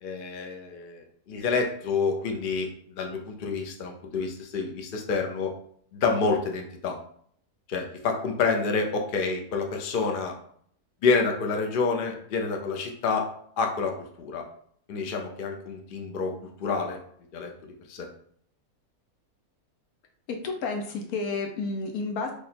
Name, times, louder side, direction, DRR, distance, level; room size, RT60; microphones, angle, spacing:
voice 1, 0.0-5.5 5.9-7.0 7.7-10.3 11.0-13.3 13.6-14.4 14.9-16.3 16.6-17.0 17.3-17.5 17.9-18.1, left 4 dB, 60° left, 3 dB, 0.5 m, -28 dB
voice 2, 20.3-22.3, left 4 dB, 80° left, 3 dB, 1.2 m, -31 dB
3.3 x 2.4 x 4.1 m, 0.62 s
omnidirectional pair, 1.5 m